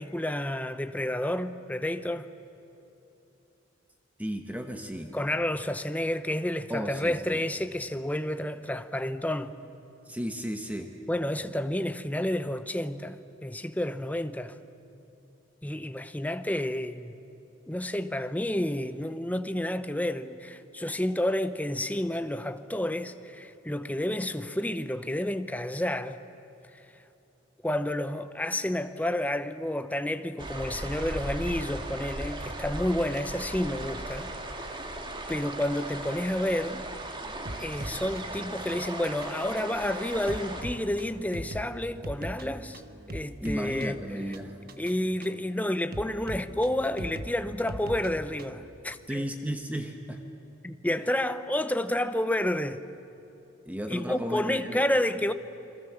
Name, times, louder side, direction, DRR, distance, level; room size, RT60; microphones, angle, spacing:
voice 1, 0.0-2.3 5.1-9.6 11.1-14.6 15.6-17.2 17.7-26.2 26.7-26.8 27.6-34.3 34.6-34.8 35.3-36.8 37.5-42.8 43.1-44.0 44.8-49.2 50.6-52.8 53.9-55.3, left 1 dB, 10° left, 0.7 m, -30 dB
voice 2, 4.2-5.2 6.7-7.4 10.1-10.9 43.4-44.6 49.1-50.2 53.6-54.8, equal, 10° right, 1.1 m, -34 dB
sound 1, 30.4-40.6, right 1 dB, 25° right, 1.8 m, -37 dB
sound 2, 37.5-48.7, right 1 dB, 50° right, 1.3 m, -41 dB
28.5 x 22.5 x 7.4 m
head